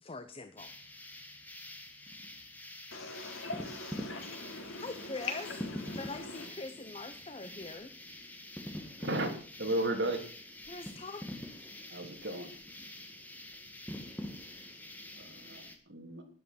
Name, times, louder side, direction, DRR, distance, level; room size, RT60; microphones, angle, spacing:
voice 1, 0.0-0.7 4.8-5.4 6.0-7.9 10.7-11.2, left 3 dB, 30° left, 9 dB, 0.9 m, -43 dB
sound 1, 0.6-15.8, left 1 dB, 10° left, 1.9 m, -45 dB
voice 2, 2.9-6.5, left 3 dB, 85° left, 2 dB, 4.0 m, -42 dB
voice 3, 9.0-10.2 11.9-12.5 15.1-16.2, right 1 dB, 60° right, 3 dB, 3.1 m, -34 dB
12.5 x 10.5 x 5.9 m, 0.44 s
head